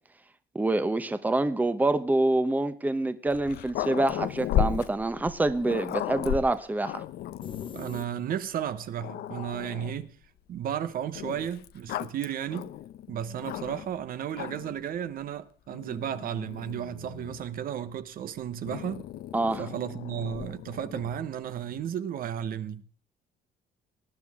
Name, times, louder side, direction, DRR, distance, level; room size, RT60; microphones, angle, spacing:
voice 1, 0.5-7.0 19.3-19.6, right 2 dB, 10° right, 0.9 m, -26 dB
Growling, 3.3-7.9 8.5-8.6 9.0-10.1 11.2-14.0 14.3-14.8 15.7-17.5 18.7-21.2, left 11 dB, 70° left, 0.7 m, -35 dB
sound 1, 7.4-8.7, left 6 dB, 30° left, 0.8 m, -42 dB
voice 2, 7.7-10.1 10.5-12.7 13.1-19.1 19.6-22.8, right 9 dB, 60° right, 1.1 m, -34 dB
19.0 x 10.5 x 3.6 m
cardioid pair, 110°, 17 cm